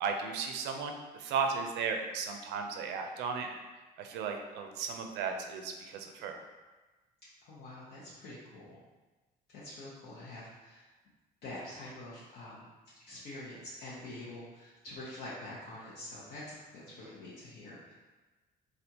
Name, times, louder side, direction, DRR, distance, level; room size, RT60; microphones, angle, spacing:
voice 1, 0.0-3.6 4.0-6.4 17.0-17.2, right 5 dB, 85° right, 4 dB, 0.4 m, -35 dB
voice 2, 7.4-8.8 9.5-10.8 11.4-12.7 13.0-17.9, left 1 dB, 65° left, -9 dB, 0.8 m, -46 dB
3.4 x 2.4 x 2.8 m, 1.2 s
cardioid pair, 110°, 17 cm